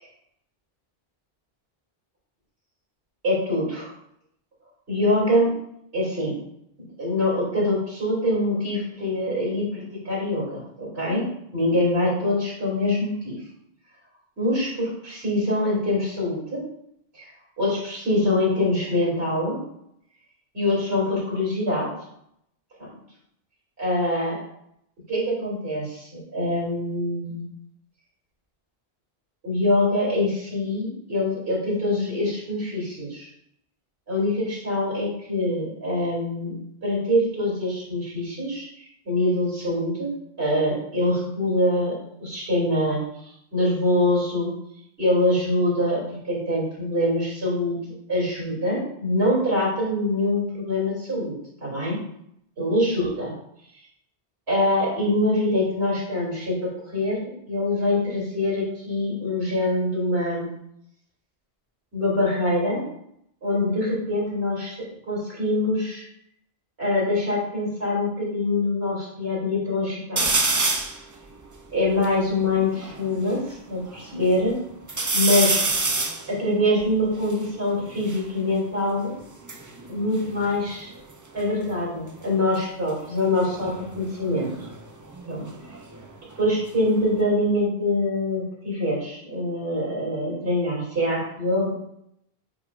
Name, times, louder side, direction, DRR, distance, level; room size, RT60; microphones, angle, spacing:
voice 1, 3.2-3.9 4.9-5.5 5.9-6.3 7.0-11.3 11.5-13.4 14.4-16.6 17.1-17.3 17.6-19.6 20.5-21.9 22.8-22.9 23.8-24.4 25.1-27.5 29.4-33.3 34.1-36.5 36.8-40.1 40.4-41.9 42.2-44.5 45.0-47.8 48.1-51.3 51.6-52.0 52.6-53.3 54.5-60.5 61.9-62.8 63.4-66.0 66.8-70.3 71.7-73.4 73.7-74.6 75.1-75.6 76.3-79.2 79.9-80.9 81.3-84.5 85.3-85.5 86.3-91.7, left 1 dB, 80° right, -5 dB, 3.0 m, -24 dB
sound 1, 70.2-71.0 71.6-71.7 71.8-73.4 73.9-74.5 74.9-78.3 79.2-81.1 81.4-81.9 83.4-86.1 86.4-87.2, right 3 dB, 25° right, 0.4 m, -28 dB
7.9 x 5.5 x 2.4 m, 0.75 s
omnidirectional pair, 1.1 m